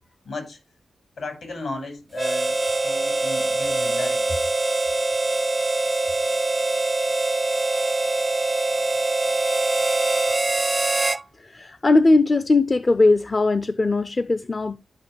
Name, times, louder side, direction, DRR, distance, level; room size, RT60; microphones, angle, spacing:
voice 1, 0.2-0.6 1.2-4.4, left 3 dB, 75° left, 5.7 m, -34 dB
Harmonica, 2.1-11.2, right 2 dB, 35° right, 0.4 m, -23 dB
voice 2, 11.4-14.8, left 2 dB, 40° left, 0.5 m, -19 dB
13.0 x 5.3 x 3.3 m
supercardioid pair, 45°, 0 cm